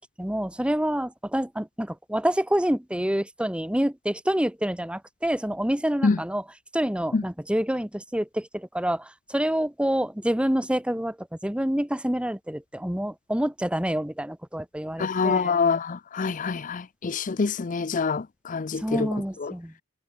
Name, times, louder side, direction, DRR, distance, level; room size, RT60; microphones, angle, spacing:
voice 1, 0.2-6.4 6.7-9.0 9.3-11.1 11.4-15.5 18.8-19.7, equal, 5° right, 1.0 m, -27 dB
voice 2, 15.0-19.5, left 4 dB, 40° left, 0.5 m, -26 dB
head